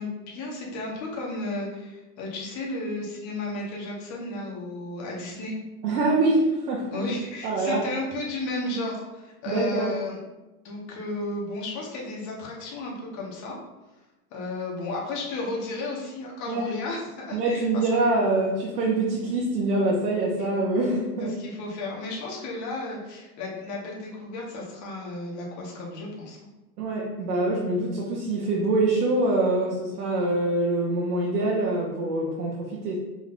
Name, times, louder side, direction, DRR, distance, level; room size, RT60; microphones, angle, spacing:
voice 1, 0.0-5.6 6.9-10.2 10.6-13.6 14.3-17.6 21.2-26.4, left 2 dB, 35° left, -3 dB, 1.5 m, -33 dB
voice 2, 5.8-6.9 7.4-7.8 9.5-9.9 16.5-16.6 17.3-21.4 26.8-33.0, right 2 dB, 75° right, -4 dB, 1.2 m, -24 dB
4.9 x 3.9 x 2.7 m, 1.1 s
hypercardioid pair, 125°, 48 cm